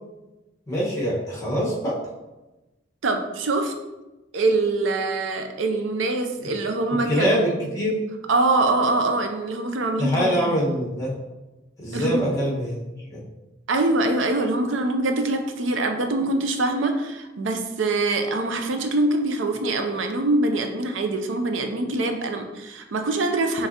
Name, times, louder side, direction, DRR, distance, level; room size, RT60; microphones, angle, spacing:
voice 1, 0.7-2.0 7.0-8.0 10.0-11.1 11.8-13.2, equal, 15° left, -5 dB, 1.3 m, -24 dB
voice 2, 3.0-3.7 4.3-7.3 8.3-10.6 11.9-12.2 13.7-23.7, right 2 dB, 75° right, 5 dB, 0.5 m, -24 dB
5.7 x 3.2 x 2.8 m, 1.1 s
head